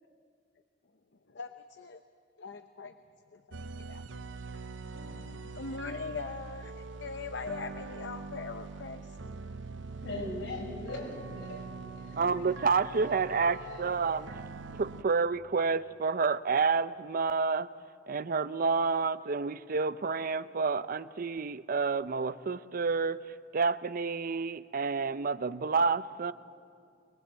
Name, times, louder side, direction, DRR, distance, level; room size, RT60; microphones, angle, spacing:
voice 1, 1.3-2.0 2.4-2.9 3.3-4.0 4.9-9.2, left 4 dB, 70° left, 0.8 m, -41 dB
sound 1, 3.5-15.0, right 4 dB, 85° right, 0.7 m, -43 dB
voice 2, 10.0-12.4 12.9-13.9, left 2 dB, 85° left, 6.8 m, -41 dB
voice 3, 12.2-14.4 14.8-17.7 18.1-26.3, right 4 dB, 50° right, 0.5 m, -29 dB
23.5 x 21.5 x 8.1 m
head